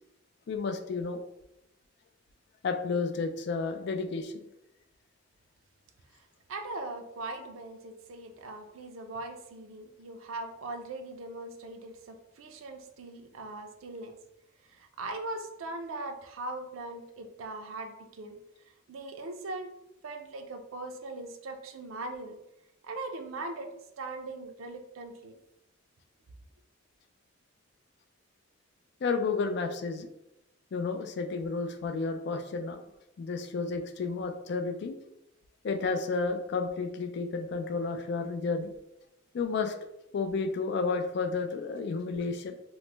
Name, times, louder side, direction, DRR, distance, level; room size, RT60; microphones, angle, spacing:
voice 1, 0.5-1.2 2.6-4.3 29.0-30.1 30.7-32.8 33.2-35.0 35.6-38.7 39.3-39.7 40.1-42.6, left 4 dB, 55° left, 7 dB, 0.3 m, -31 dB
voice 2, 6.5-14.2 14.7-18.4 18.9-19.7 20.0-22.4 22.8-25.4, right 2 dB, 90° right, 5 dB, 0.4 m, -40 dB
2.9 x 2.1 x 3.2 m, 0.87 s
head